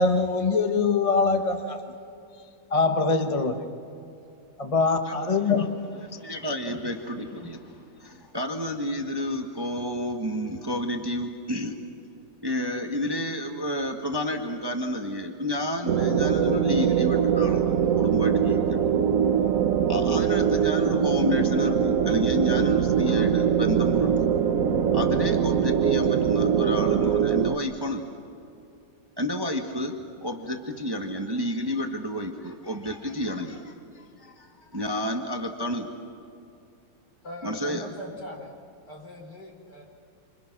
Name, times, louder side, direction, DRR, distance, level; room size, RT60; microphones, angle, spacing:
voice 1, 0.0-1.8 2.7-3.7 4.6-5.7, left 4 dB, 25° left, 5 dB, 1.0 m, -23 dB
voice 2, 5.9-11.8 12.4-18.9 19.9-24.3 24.9-28.1 29.2-34.5 34.7-35.9 37.4-37.9, left 1 dB, 15° right, 3 dB, 1.3 m, -30 dB
sound 1, 15.9-27.6, right 8 dB, 55° right, 1.1 m, -22 dB
voice 3, 37.2-38.6 38.9-39.8, left 1 dB, 60° left, 0 dB, 5.0 m, -40 dB
28.0 x 26.5 x 6.1 m, 2.6 s
omnidirectional pair, 2.0 m